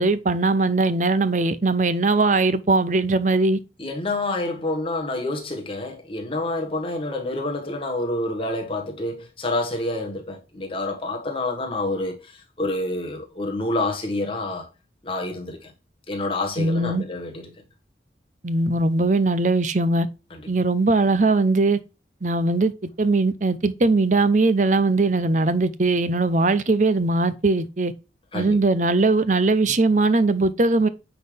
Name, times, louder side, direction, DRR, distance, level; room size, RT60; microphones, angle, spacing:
voice 1, 0.0-3.6 16.6-17.0 18.4-20.1 20.5-21.8 22.2-22.7 23.0-27.9 28.3-30.9, right 3 dB, 45° right, 0.6 m, -20 dB
voice 2, 3.8-14.7 15.0-15.7 16.1-17.5 20.3-20.4 28.3-28.6, left 2 dB, 30° left, 1.6 m, -28 dB
9.4 x 4.0 x 3.4 m
head